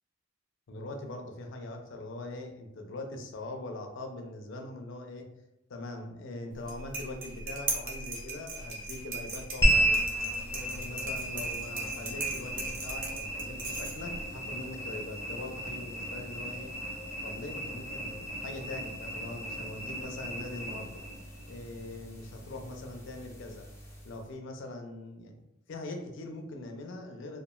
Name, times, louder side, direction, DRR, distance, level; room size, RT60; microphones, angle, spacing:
voice 1, 0.7-5.3 5.7-10.0 10.5-16.7 17.2-21.0 21.5-23.7 24.0-25.4 25.7-27.4, left 2 dB, 65° left, 3 dB, 0.4 m, -42 dB
sound 1, 6.5-14.3, right 3 dB, 45° right, 0.5 m, -38 dB
sound 2, 9.6-24.2, right 1 dB, 15° left, 0.6 m, -34 dB
3.0 x 2.3 x 2.2 m, 0.89 s
head